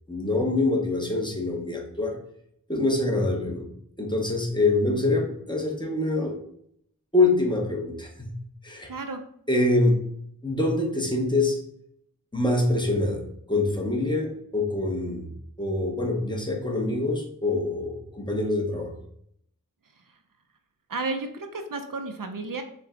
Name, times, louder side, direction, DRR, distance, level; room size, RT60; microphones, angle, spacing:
voice 1, 0.1-2.2 2.7-3.7 4.0-6.3 7.1-8.3 8.6-8.9 9.5-10.0 10.4-11.6 12.3-13.2 13.5-15.3 15.6-18.9, left 2 dB, 15° left, 1 dB, 1.0 m, -25 dB
voice 2, 8.9-9.2 20.9-22.6, right 3 dB, 65° right, 6 dB, 0.6 m, -32 dB
5.8 x 2.2 x 3.7 m, 0.70 s
wide cardioid pair, 55°, 35 cm